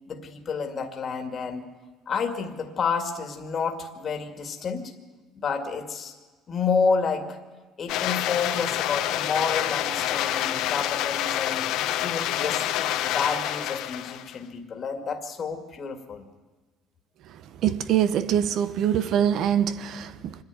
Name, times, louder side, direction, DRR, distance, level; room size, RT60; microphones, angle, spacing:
voice 1, 0.1-1.7 2.1-4.8 5.4-6.1 6.5-7.4 7.8-11.7 12.0-16.2, left 5 dB, 40° left, 2.2 m, -29 dB
sound 1, 7.9-14.4, left 13 dB, 75° left, 1.0 m, -27 dB
voice 2, 17.6-20.4, right 9 dB, 60° right, 1.1 m, -24 dB
25.5 x 10.5 x 9.6 m
cardioid pair, 120°, 0 cm